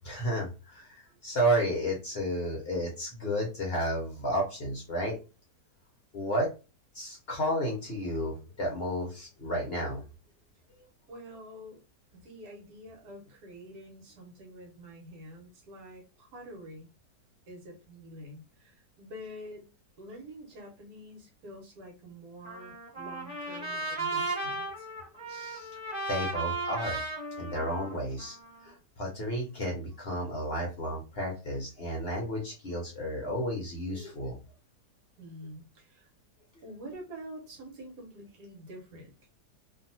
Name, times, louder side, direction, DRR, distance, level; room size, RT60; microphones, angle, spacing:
voice 1, 0.0-5.2 6.1-6.5 6.9-10.0 23.6-23.7 24.6-24.7 25.3-25.7 26.1-27.0 27.4-28.4 28.6-34.4, equal, 50° left, 0.8 m, -32 dB
voice 2, 11.1-11.8 12.1-16.9 17.5-19.7 20.0-24.9 35.2-36.1 36.6-39.3, equal, 75° right, 1.5 m, -47 dB
Trumpet, 22.4-28.7, right 3 dB, 5° right, 1.2 m, -35 dB
2.8 x 2.6 x 2.7 m
omnidirectional pair, 1.7 m